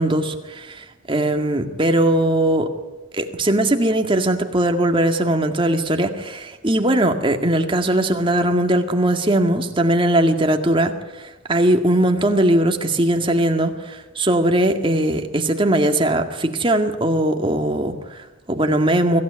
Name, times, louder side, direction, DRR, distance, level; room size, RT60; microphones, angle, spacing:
voice 1, 0.0-2.7 3.1-19.2, right 1 dB, 25° right, 5 dB, 2.0 m, -20 dB
24.5 x 16.0 x 9.9 m, 1.1 s
head